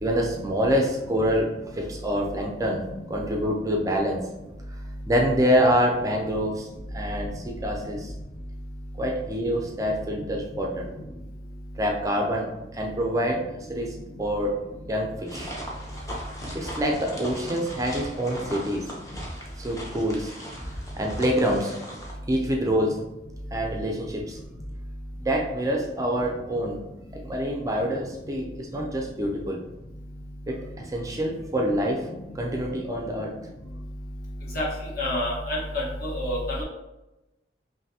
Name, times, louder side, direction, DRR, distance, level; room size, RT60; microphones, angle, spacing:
voice 1, 0.0-4.2 5.1-6.7 6.9-8.1 9.0-11.0 11.8-13.4 13.7-14.6 14.9-15.5 16.5-18.9 19.6-20.7 21.0-21.7 22.3-23.0 23.5-24.4 25.2-26.8 27.1-29.6 30.5-32.1 32.3-33.4, equal, 20° right, 1 dB, 0.4 m, -26 dB
sound 1, 15.3-22.1, equal, 20° left, 0.7 m, -38 dB
voice 2, 35.0-36.6, left 1 dB, 55° left, -5 dB, 1.3 m, -28 dB
5.5 x 2.6 x 2.8 m, 0.99 s
head